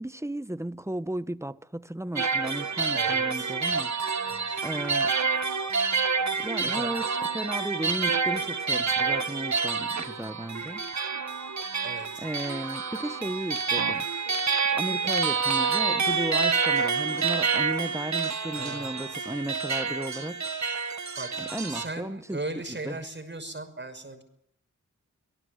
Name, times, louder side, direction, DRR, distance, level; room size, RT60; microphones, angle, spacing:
voice 1, 0.0-3.9 4.6-5.1 6.4-10.9 12.2-14.1 14.7-20.5 21.4-22.4 22.7-23.0, right 1 dB, 10° right, 1.0 m, -34 dB
sound 1, 2.2-21.9, right 5 dB, 65° right, 1.7 m, -28 dB
voice 2, 2.9-3.5 4.3-4.7 6.6-6.9 11.8-12.3 18.6-19.3 21.2-21.3 21.7-24.2, right 2 dB, 35° right, 5.9 m, -38 dB
25.5 x 18.0 x 8.0 m
wide cardioid pair, 65°, 31 cm